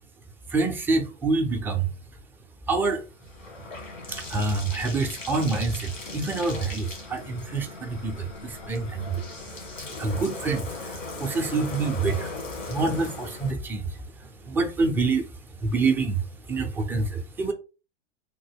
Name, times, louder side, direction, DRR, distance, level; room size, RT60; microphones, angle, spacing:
voice 1, 0.5-1.9 2.7-3.0 4.1-9.2 10.0-10.7 11.2-12.3 12.7-13.9 14.5-15.2 15.6-16.2 16.5-17.5, right 3 dB, 5° right, 0.3 m, -26 dB
Bathtub (filling or washing), 2.2-13.5, left 3 dB, 85° left, 1.8 m, -39 dB
3.6 x 2.1 x 3.4 m
hypercardioid pair, 100°, 38 cm